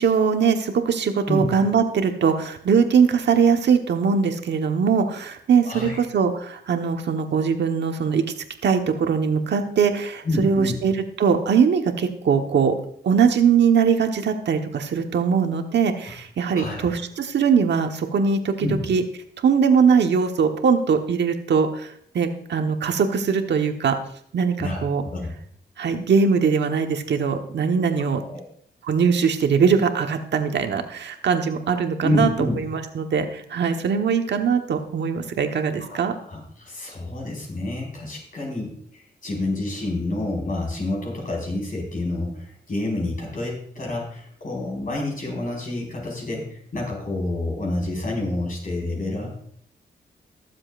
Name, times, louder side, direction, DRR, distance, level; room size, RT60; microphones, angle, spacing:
voice 1, 0.0-8.2 8.6-12.7 13.0-19.0 19.4-24.0 24.3-25.0 25.8-28.2 28.9-36.1, right 6 dB, 75° right, 5 dB, 1.2 m, -21 dB
voice 2, 5.6-6.0 10.2-10.8 16.5-16.9 18.6-18.7 24.6-25.3 28.0-28.4 32.0-32.6 35.9-36.0 36.2-49.3, left 2 dB, 50° left, -1 dB, 5.0 m, -28 dB
22.0 x 7.5 x 2.5 m, 0.65 s
cardioid pair, 85°, 18 cm